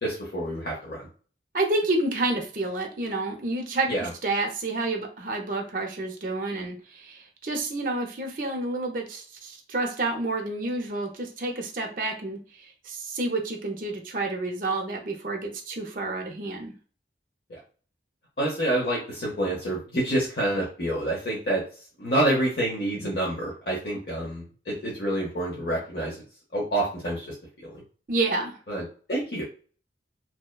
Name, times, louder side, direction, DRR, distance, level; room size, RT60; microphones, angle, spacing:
voice 1, 0.0-1.1 3.9-4.1 17.5-17.6 18.4-21.6 22.0-26.2 26.5-27.3 27.6-27.8 28.7-29.4, right 1 dB, 60° left, -5 dB, 0.7 m, -28 dB
voice 2, 1.5-3.9 4.2-16.7 28.1-28.6, right 2 dB, 50° right, 2 dB, 0.5 m, -29 dB
2.7 x 2.1 x 2.2 m, 0.39 s
head